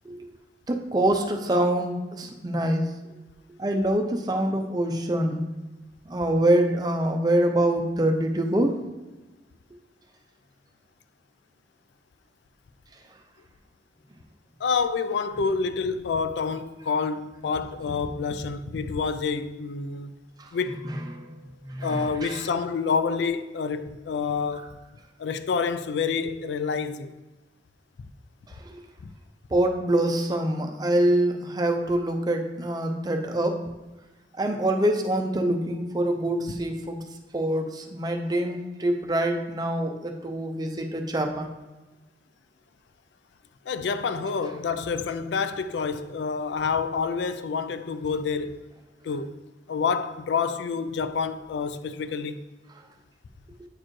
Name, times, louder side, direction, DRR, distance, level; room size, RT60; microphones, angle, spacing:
voice 1, 0.7-2.9 3.6-5.5 6.1-8.7 20.4-20.5 20.8-21.3 21.6-22.4 28.7-28.8 29.5-33.7 34.4-37.0 37.3-41.5, right 1 dB, 20° right, 0.5 m, -25 dB
voice 2, 14.6-20.1 20.5-20.9 21.8-24.8 25.2-27.1 43.7-48.7 49.0-49.4 49.7-52.4, left 5 dB, 80° left, 0.4 m, -28 dB
8.6 x 4.4 x 3.1 m
head